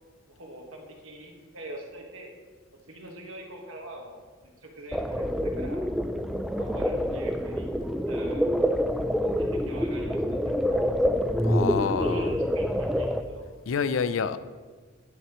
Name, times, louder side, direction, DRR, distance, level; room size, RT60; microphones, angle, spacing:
voice 1, 0.3-2.3 2.9-5.8 6.6-7.7 8.1-8.5 9.3-10.8 11.8-13.5, right 1 dB, 85° right, 1 dB, 1.6 m, -44 dB
sound 1, 4.9-13.2, equal, ahead, 0.3 m, -27 dB
voice 2, 11.4-12.4 13.7-14.4, left 6 dB, 80° left, 13 dB, 0.4 m, -28 dB
11.0 x 9.7 x 3.0 m, 1.5 s
head